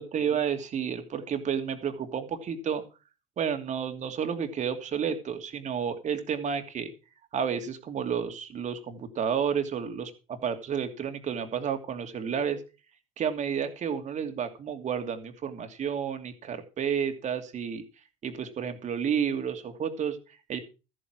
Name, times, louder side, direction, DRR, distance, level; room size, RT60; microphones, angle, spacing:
voice 1, 0.0-2.8 3.4-6.9 7.3-12.6 13.2-17.8 18.2-20.6, right 7 dB, 45° right, 7 dB, 2.7 m, -31 dB
14.0 x 8.5 x 6.0 m, 0.32 s
hypercardioid pair, 65°, 17 cm